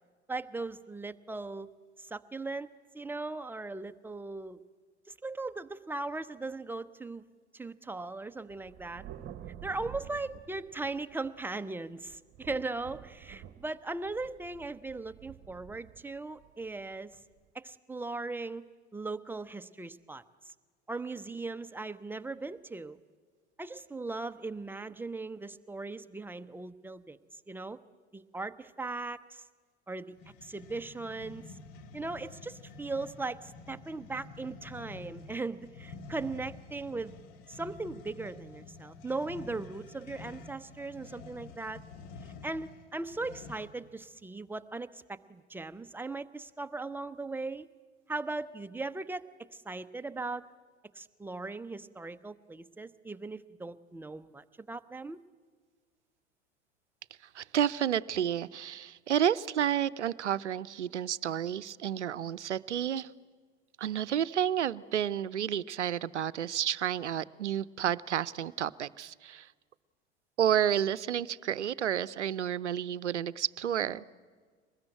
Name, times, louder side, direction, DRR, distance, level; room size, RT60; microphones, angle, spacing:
voice 1, 0.3-1.7 2.0-2.7 2.9-4.6 5.1-7.2 7.5-9.0 9.6-17.2 17.5-18.7 18.9-20.2 20.9-23.0 23.6-27.2 27.5-27.8 28.1-29.4 29.9-30.2 30.4-31.6 31.9-37.1 37.5-41.8 42.2-47.7 48.1-49.2 49.5-50.4 50.9-55.2, right 3 dB, 5° right, 11 dB, 0.7 m, -38 dB
Thunder, 8.5-11.6 12.1-17.4, right 11 dB, 35° right, 1.3 m, -50 dB
sound 1, 30.2-43.9, left 4 dB, 55° left, 1.7 m, -49 dB
voice 2, 57.3-63.1 63.8-69.5 70.4-74.1, right 9 dB, 85° right, 20 dB, 0.6 m, -30 dB
23.5 x 20.0 x 8.9 m, 1.5 s
figure-of-eight pair, 80°, 34 cm